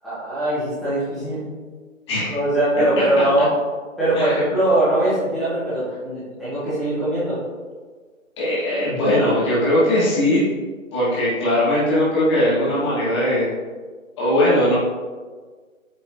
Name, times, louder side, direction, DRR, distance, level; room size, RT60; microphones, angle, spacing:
voice 1, 0.0-1.4 2.3-3.4 4.0-7.4, right 1 dB, ahead, -16 dB, 1.3 m, -21 dB
voice 2, 8.4-10.4 10.9-13.5 14.2-14.8, left 1 dB, 20° left, -10 dB, 1.8 m, -19 dB
8.6 x 4.2 x 2.8 m, 1.5 s
figure-of-eight pair, 160°, 41 cm